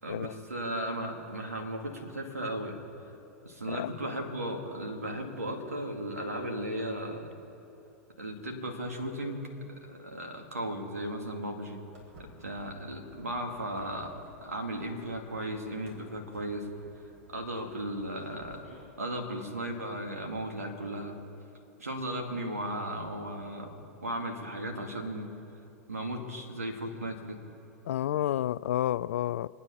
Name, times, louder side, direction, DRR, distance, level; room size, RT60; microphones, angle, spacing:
voice 1, 0.0-2.8 3.4-7.3 8.2-9.5 9.8-11.8 12.2-14.1 14.4-16.7 17.3-18.7 19.0-21.2 21.8-23.7 24.0-25.3 25.9-27.4, right 1 dB, 85° right, 2.3 m, -36 dB
Walk footsteps, 11.9-18.9, equal, 70° right, 4.1 m, -57 dB
voice 2, 27.9-29.5, left 12 dB, 65° left, 0.3 m, -30 dB
26.0 x 9.6 x 5.7 m
figure-of-eight pair, 95°, 8 cm